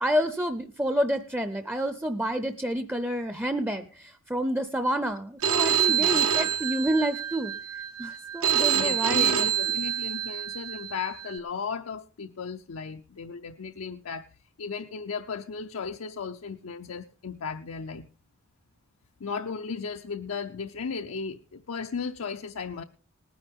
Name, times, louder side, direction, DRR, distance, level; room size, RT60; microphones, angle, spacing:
voice 1, 0.0-7.5 8.0-9.5, right 1 dB, 10° right, 0.5 m, -29 dB
Telephone, 5.4-11.4, right 9 dB, 90° right, 1.1 m, -26 dB
voice 2, 5.9-6.2 8.7-14.3 14.6-18.1 19.2-22.8, left 5 dB, 85° left, 0.6 m, -35 dB
19.0 x 10.0 x 3.6 m
head